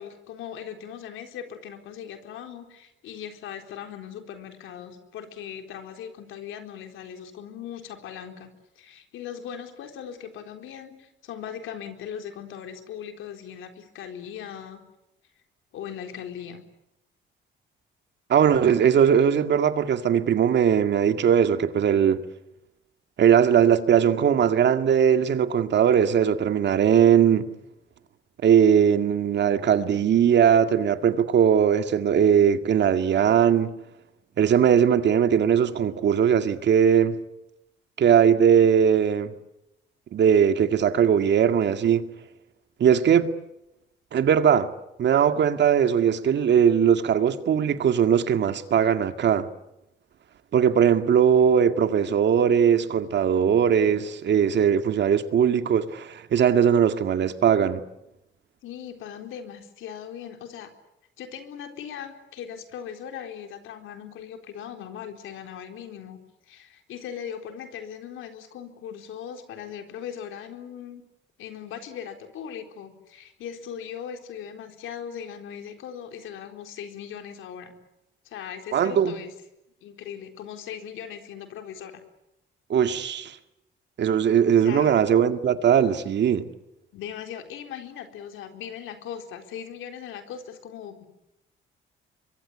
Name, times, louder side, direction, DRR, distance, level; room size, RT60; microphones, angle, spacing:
voice 1, 0.0-8.5 8.8-14.8 15.7-16.6 58.6-60.7 61.2-66.2 66.5-71.0 71.4-77.7 78.2-79.4 79.8-82.0 84.6-85.0 86.9-91.1, left 8 dB, 90° left, 4.0 m, -39 dB
voice 2, 18.3-22.2 23.2-27.5 28.4-33.8 34.4-37.2 38.0-39.3 40.1-42.1 42.8-43.3 44.1-44.7 45.0-49.5 50.5-57.8 78.7-79.1 82.7-83.4 84.0-86.5, right 8 dB, 60° right, 2.1 m, -20 dB
25.0 x 23.0 x 9.8 m
cardioid pair, 90°, 20 cm